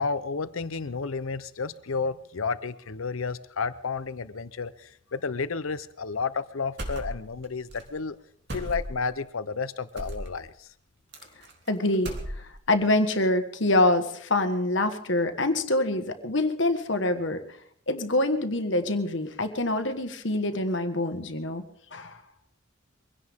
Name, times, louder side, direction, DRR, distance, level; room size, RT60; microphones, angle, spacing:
voice 1, 0.0-8.2 8.5-10.7, left 4 dB, 85° left, 14 dB, 0.8 m, -31 dB
sound 1, 6.8-7.4 7.7-7.8 8.5-9.1 10.0-10.3 11.1-11.7 11.9-12.7, right 1 dB, 55° right, 3.1 m, -35 dB
voice 2, 11.7-17.4 17.9-21.6 21.9-22.2, left 2 dB, 65° left, 8 dB, 1.5 m, -25 dB
23.5 x 17.0 x 3.7 m, 0.64 s
head